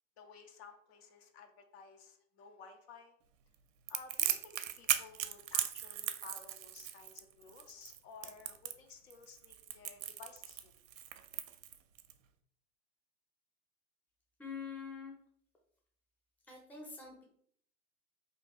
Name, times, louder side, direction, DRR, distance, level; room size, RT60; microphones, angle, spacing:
voice 1, 0.2-3.1 3.9-10.7, left 5 dB, 50° left, 5 dB, 0.6 m, -55 dB
Crackle, 3.9-12.1, right 11 dB, 75° right, 0.5 m, -37 dB
voice 2, 14.4-15.2 16.5-17.2, left 5 dB, 5° left, -1 dB, 0.6 m, -45 dB
2.8 x 2.2 x 4.2 m, 0.63 s
hypercardioid pair, 120°, 40 cm